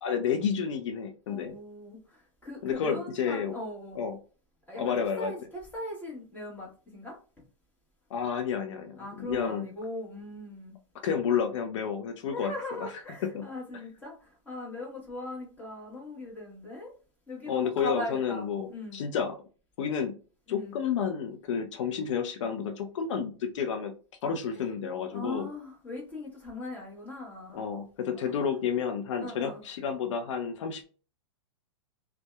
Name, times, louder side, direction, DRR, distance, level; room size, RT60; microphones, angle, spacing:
voice 1, 0.0-1.5 2.6-3.5 4.0-4.2 4.7-5.3 8.1-9.7 11.0-12.9 13.3-13.5 17.5-19.4 19.8-20.2 20.5-23.9 24.2-25.5 27.5-30.8, left 7 dB, 65° left, 0.4 m, -30 dB
voice 2, 1.3-4.0 4.7-7.2 8.9-10.7 11.2-11.4 12.3-16.9 17.3-19.1 20.5-20.7 24.5-24.7 25.1-27.6 28.1-28.5 29.2-29.6, left 2 dB, 10° left, 1.1 m, -39 dB
2.6 x 2.1 x 2.2 m
hypercardioid pair, 130°, 17 cm